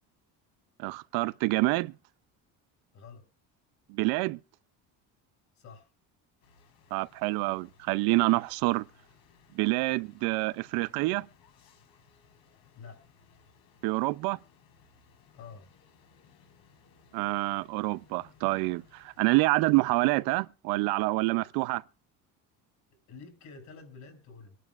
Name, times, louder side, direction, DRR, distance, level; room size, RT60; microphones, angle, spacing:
voice 1, 0.8-1.9 3.9-4.4 6.9-8.9 9.5-11.3 13.8-14.4 17.1-21.8, right 22 dB, 80° right, 0.6 m, -27 dB
voice 2, 5.6-5.9 12.7-13.0 15.3-15.7 23.1-24.6, left 5 dB, 50° left, 6.0 m, -48 dB
sound 1, 6.4-20.1, left 6 dB, 75° left, 4.6 m, -62 dB
25.5 x 11.0 x 2.4 m
cardioid pair, 155°, 36 cm